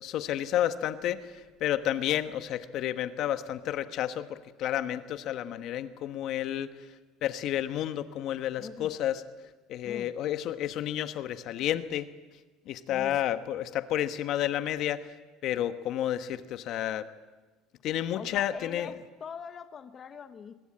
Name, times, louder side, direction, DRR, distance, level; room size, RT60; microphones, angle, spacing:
voice 1, 0.0-6.9 7.2-9.2 9.7-12.1 12.7-15.1 15.4-17.1 17.8-18.9, left 11 dB, 55° left, 10 dB, 1.2 m, -31 dB
voice 2, 8.6-9.0 9.8-10.1 12.9-13.2 18.1-20.5, left 7 dB, 30° left, 9 dB, 1.1 m, -43 dB
24.5 x 21.0 x 8.8 m, 1.2 s
cardioid pair, 135°, 0 cm